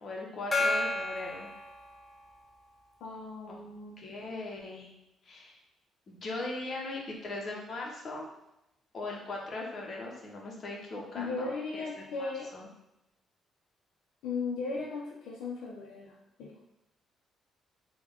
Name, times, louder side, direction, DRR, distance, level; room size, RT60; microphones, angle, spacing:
voice 1, 0.0-1.5 3.5-3.6 4.0-4.9 5.2-5.6 6.1-8.3 8.9-11.4 11.7-12.7, left 2 dB, 50° left, -2 dB, 0.9 m, -39 dB
Gong, 0.5-2.5, left 2 dB, 20° left, 0.5 m, -32 dB
voice 2, 3.0-4.0 11.1-12.5 14.2-16.1 16.4-16.6, left 4 dB, 90° left, -3 dB, 0.5 m, -37 dB
3.5 x 2.3 x 3.4 m, 0.86 s
cardioid pair, 90°, 0 cm